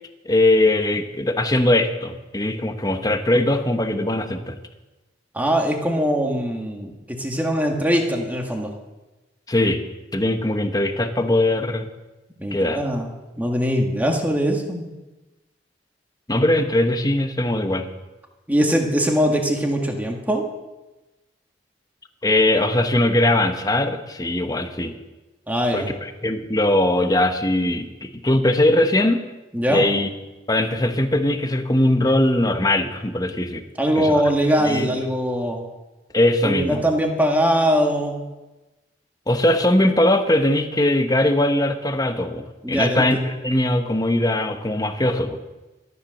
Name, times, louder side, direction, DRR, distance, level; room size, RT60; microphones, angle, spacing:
voice 1, 0.2-4.6 9.5-9.8 10.1-11.9 12.5-12.8 16.3-17.9 22.2-25.0 25.7-29.2 29.7-30.1 30.5-33.6 34.0-34.2 34.6-34.9 36.1-36.8 39.3-45.4, left 1 dB, 20° left, 7 dB, 1.0 m, -20 dB
voice 2, 5.3-8.7 12.4-13.1 13.4-14.9 18.5-20.5 25.5-25.9 29.5-29.8 33.8-35.6 36.4-38.2 42.6-43.1, equal, 10° right, 1 dB, 1.9 m, -21 dB
13.5 x 10.5 x 6.6 m, 1.1 s
head